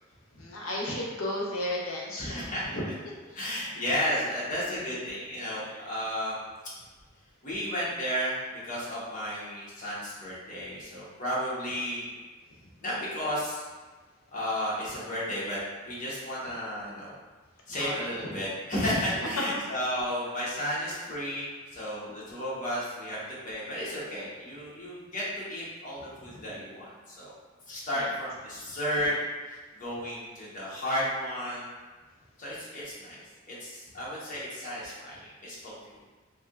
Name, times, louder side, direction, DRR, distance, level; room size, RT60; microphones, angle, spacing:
voice 1, 0.3-2.8 5.7-5.9 17.8-18.0 18.3-18.4 26.3-26.4 27.9-28.1, left 1 dB, 80° left, -2 dB, 0.7 m, -34 dB
voice 2, 2.2-2.7 3.3-6.4 7.4-12.1 12.8-13.6 14.3-15.6 15.8-17.2 17.7-21.5 21.7-23.2 23.4-27.3 27.7-29.1 29.5-31.7 32.4-33.2 33.5-35.7, equal, 40° left, -8 dB, 1.0 m, -33 dB
3.4 x 2.7 x 2.4 m, 1.3 s
head